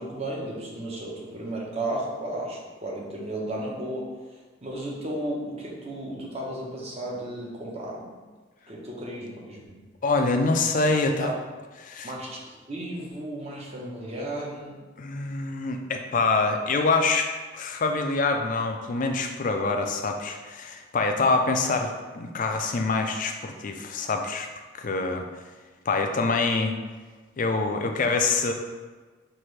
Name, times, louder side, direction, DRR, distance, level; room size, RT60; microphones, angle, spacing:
voice 1, 0.0-4.1 4.6-8.1 8.7-9.8 11.2-11.4 12.0-14.8, right 1 dB, 35° right, -4 dB, 0.9 m, -34 dB
voice 2, 10.0-11.3 11.8-12.1 15.0-24.5 24.8-25.3 25.9-26.8 27.4-28.5, left 3 dB, 45° left, 4 dB, 0.4 m, -25 dB
5.8 x 2.6 x 3.2 m, 1.4 s
head